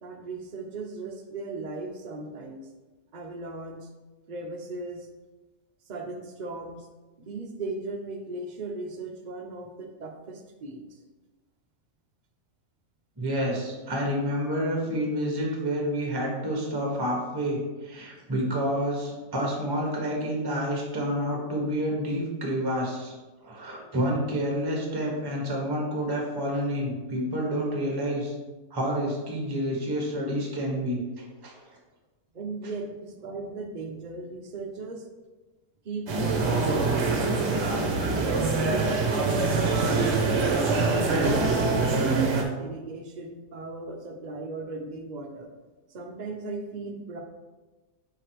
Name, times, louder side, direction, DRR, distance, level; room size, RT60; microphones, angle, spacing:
voice 1, 0.0-2.7 3.1-3.9 4.3-5.1 5.9-6.9 7.2-10.8 32.3-35.0 35.8-38.1 38.7-40.0 40.4-45.5 45.9-47.2, right 3 dB, 70° right, 2 dB, 0.4 m, -37 dB
voice 2, 13.2-23.1 23.4-28.3 28.7-31.0 31.4-31.5, equal, 15° right, -2 dB, 1.1 m, -29 dB
sound 1, 36.1-42.4, right 3 dB, 50° right, 1.0 m, -24 dB
5.0 x 4.8 x 4.5 m, 1.2 s
omnidirectional pair, 1.8 m